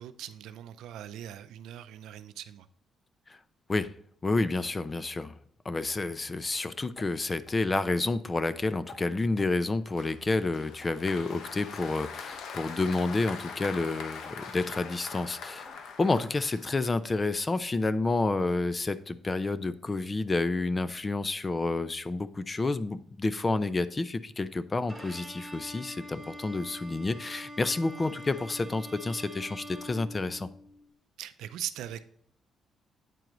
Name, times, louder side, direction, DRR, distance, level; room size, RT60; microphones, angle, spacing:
voice 1, 0.0-2.7 31.2-32.1, right 11 dB, 85° right, 0.5 m, -40 dB
voice 2, 4.2-5.4 5.6-15.7 16.0-30.5, left 3 dB, 25° left, 0.5 m, -29 dB
sound 1, 7.0-7.1 7.5-7.6 8.0-8.1 8.4-8.5 8.9-9.0 9.4-9.5 9.9-10.1 10.4-10.5 10.8-11.4 11.8-12.0 12.3-12.5 12.8-13.0 13.2-13.4 13.7-13.9 14.2-14.4 14.7-14.9 15.2-15.4 15.7-15.8 16.2-16.3 16.7-16.9 17.2-17.3 17.7-17.8 18.2-18.3 18.7-18.8 19.2-19.3, left 3 dB, 50° left, 1.3 m, -51 dB
Applause, 10.0-17.1, left 5 dB, 75° left, 0.9 m, -42 dB
Bowed string instrument, 24.9-30.8, equal, 5° left, 3.0 m, -44 dB
9.2 x 4.6 x 3.8 m
cardioid pair, 90°, 0 cm